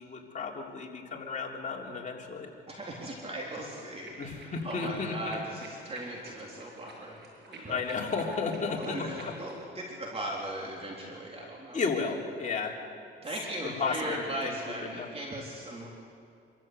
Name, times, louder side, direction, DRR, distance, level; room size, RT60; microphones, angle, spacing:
voice 1, 0.0-2.5 4.2-5.4 7.7-9.3 11.7-12.7 13.6-15.1, left 4 dB, 40° left, -1 dB, 3.6 m, -33 dB
voice 2, 2.7-7.8 8.6-11.8 12.4-12.6 13.2-15.9, right 1 dB, 30° right, -2 dB, 3.7 m, -38 dB
sound 1, 3.4-9.6, right 2 dB, 60° right, 7.5 m, -50 dB
26.0 x 14.0 x 8.2 m, 2.4 s
cardioid pair, 90°, 20 cm